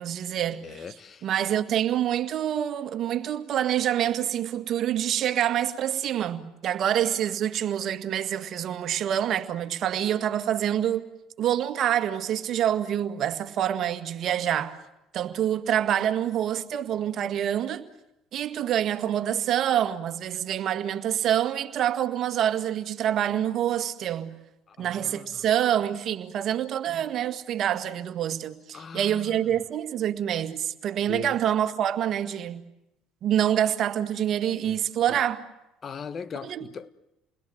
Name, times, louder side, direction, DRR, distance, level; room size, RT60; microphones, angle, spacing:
voice 1, 0.0-0.9 1.2-11.1 11.4-14.8 15.1-17.9 18.3-24.4 24.8-32.6 33.2-35.4 36.4-36.6, right 10 dB, 55° right, 2.0 m, -26 dB
voice 2, 0.6-1.3 24.8-25.4 28.7-29.4 31.1-31.4 34.7-34.8 35.1-35.2 35.8-36.9, left 6 dB, 40° left, 1.2 m, -39 dB
29.5 x 21.5 x 7.9 m
hypercardioid pair, 70°, 0 cm